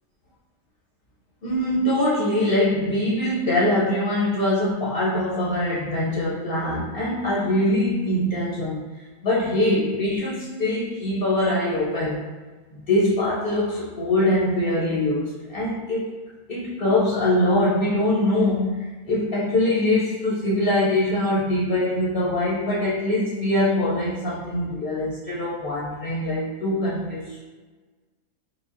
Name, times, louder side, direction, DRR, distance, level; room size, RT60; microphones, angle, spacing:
voice 1, 1.4-12.3 12.7-16.1 16.5-27.4, left 1 dB, 55° left, -6 dB, 0.6 m, -23 dB
4.9 x 2.1 x 2.4 m, 1.3 s
omnidirectional pair, 1.5 m